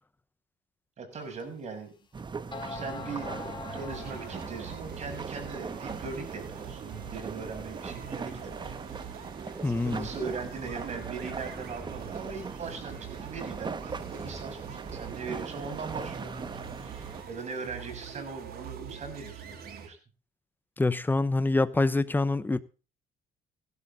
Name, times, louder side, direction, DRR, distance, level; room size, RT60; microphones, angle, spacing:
voice 1, 1.0-1.9 2.7-3.4 3.7-9.1 9.8-20.0, right 4 dB, 40° right, 6.2 m, -40 dB
sound 1, 1.4-1.5 2.2-2.3 2.5-5.0, left 5 dB, 30° left, 2.9 m, -42 dB
sound 2, 2.1-17.2, right 5 dB, 25° right, 1.2 m, -40 dB
sound 3, 3.9-19.9, right 7 dB, 65° right, 3.1 m, -44 dB
voice 2, 9.6-10.1 20.8-22.6, left 2 dB, 10° left, 0.9 m, -25 dB
16.0 x 12.0 x 3.8 m
cardioid pair, 110°, 17 cm